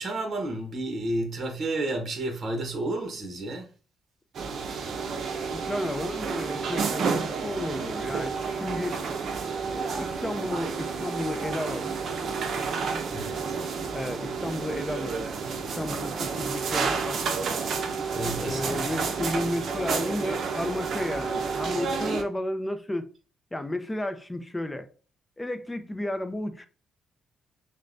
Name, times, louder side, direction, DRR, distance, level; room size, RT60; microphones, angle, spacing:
voice 1, 0.0-3.7 13.1-13.6 18.1-19.0, right 1 dB, 45° right, 1.0 m, -31 dB
sound 1, 4.3-22.2, right 5 dB, 60° right, 0.6 m, -30 dB
voice 2, 5.5-9.0 9.7-12.0 13.9-15.3 15.6-17.3 18.4-23.1 23.5-24.9 25.4-26.7, left 1 dB, 15° left, 0.6 m, -32 dB
6.3 x 2.2 x 2.6 m
cardioid pair, 90°, 0 cm